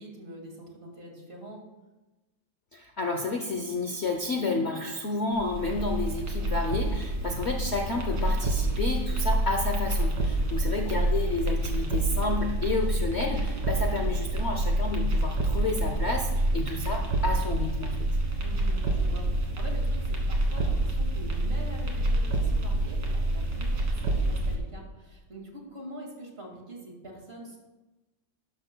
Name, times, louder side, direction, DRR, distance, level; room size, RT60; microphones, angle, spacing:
voice 1, 0.0-1.6 10.6-10.7 18.4-27.6, right 1 dB, 35° right, 0 dB, 2.2 m, -44 dB
voice 2, 2.7-18.1, left 3 dB, 50° left, 3 dB, 0.9 m, -31 dB
sound 1, 5.3-24.5, right 1 dB, 80° right, 2.2 m, -27 dB
12.0 x 11.5 x 2.2 m, 1.1 s
omnidirectional pair, 1.9 m